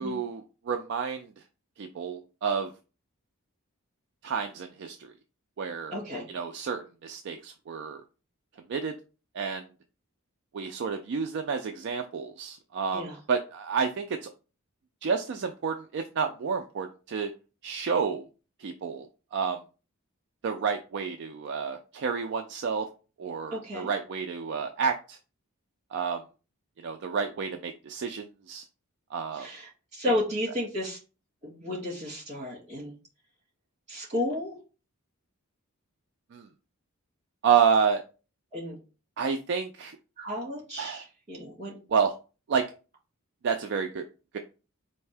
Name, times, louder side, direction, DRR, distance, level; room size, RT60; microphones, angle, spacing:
voice 1, 0.0-1.3 1.8-2.7 4.2-5.1 5.6-5.9 6.3-8.0 8.7-9.0 9.3-9.6 10.5-14.3 15.0-17.3 17.6-18.3 18.6-19.1 19.3-19.6 20.4-22.9 23.2-25.2 25.9-26.2 26.8-28.6 29.1-29.5 36.3-36.5 37.4-38.0 39.2-40.0 40.8-41.0 41.9-42.1 42.5-42.7 43.4-44.1 44.3-44.4, right 6 dB, 55° right, 5 dB, 0.4 m, -29 dB
voice 2, 5.9-6.3 12.9-13.2 23.5-23.9 29.3-31.0 31.4-32.9 33.9-34.6 38.5-38.8 40.2-41.8, left 1 dB, 35° right, -4 dB, 2.2 m, -33 dB
4.3 x 2.7 x 3.3 m, 0.33 s
head